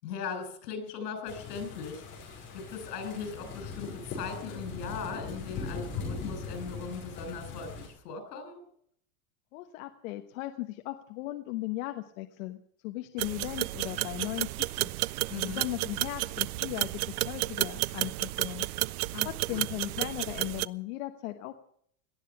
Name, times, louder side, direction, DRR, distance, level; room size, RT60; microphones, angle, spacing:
voice 1, 0.0-8.6 15.3-15.6 19.1-19.6, left 5 dB, 85° left, 8 dB, 6.3 m, -39 dB
sound 1, 1.3-7.9, left 4 dB, 25° left, 5.3 m, -40 dB
voice 2, 9.5-15.0 15.4-18.6 19.2-21.5, left 17 dB, 60° left, 6 dB, 1.2 m, -37 dB
sound 2, 13.2-20.7, right 20 dB, 70° right, 0.6 m, -32 dB
18.5 x 12.5 x 5.8 m, 0.67 s
supercardioid pair, 180°, 46 cm